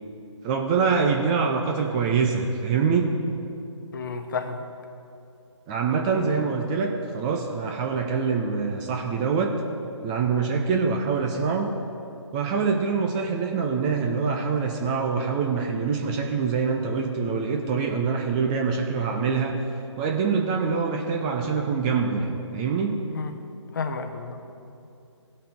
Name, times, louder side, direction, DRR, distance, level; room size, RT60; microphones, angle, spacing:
voice 1, 0.4-3.1 5.7-9.5 10.0-11.7 12.3-19.6 20.0-23.0, right 5 dB, 15° right, 2 dB, 0.4 m, -25 dB
voice 2, 3.9-4.6 23.1-23.4 23.7-24.5, left 4 dB, 40° left, 8 dB, 0.8 m, -31 dB
16.5 x 5.6 x 3.5 m, 2.6 s
figure-of-eight pair, 145°, 16 cm